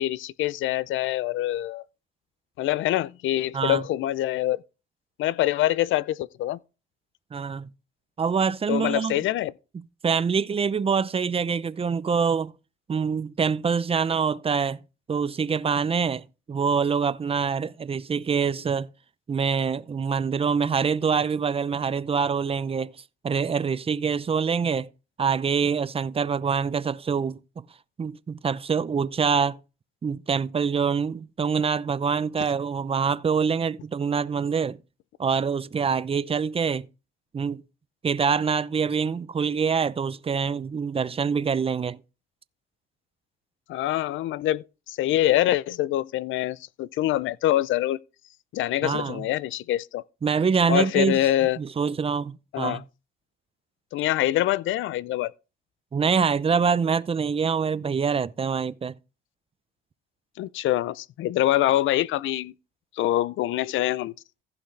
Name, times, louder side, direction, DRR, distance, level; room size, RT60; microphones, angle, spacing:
voice 1, 0.0-1.8 2.6-4.6 5.2-6.6 8.7-9.5 43.7-48.0 48.5-50.0 50.7-51.6 52.5-52.8 53.9-55.3 60.4-62.5 63.0-64.1, left 14 dB, 80° left, 0.5 m, -25 dB
voice 2, 7.3-7.7 8.2-9.2 9.7-12.5 12.9-14.8 15.1-18.9 19.3-22.9 23.2-24.9 25.2-27.6 28.0-29.6 30.0-34.8 35.2-36.9 37.3-37.6 38.0-42.0 48.8-49.2 50.2-51.2 51.6-52.8 55.9-58.9, right 6 dB, 30° right, 0.6 m, -25 dB
15.5 x 5.9 x 3.3 m
cardioid pair, 90°, 20 cm